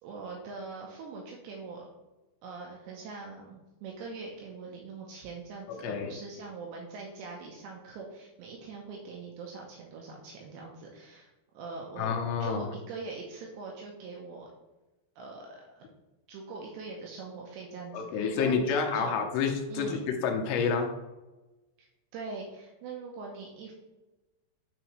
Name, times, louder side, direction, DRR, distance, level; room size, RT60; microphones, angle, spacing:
voice 1, 0.0-1.9 2.4-12.1 12.4-14.5 15.2-15.8 16.3-19.2 19.7-20.0 21.8-21.9 22.1-23.7, right 4 dB, 80° right, -1 dB, 2.9 m, -42 dB
voice 2, 12.0-12.7 17.9-20.9, left 5 dB, 80° left, 3 dB, 2.8 m, -29 dB
9.4 x 4.0 x 3.1 m, 1.1 s
omnidirectional pair, 5.3 m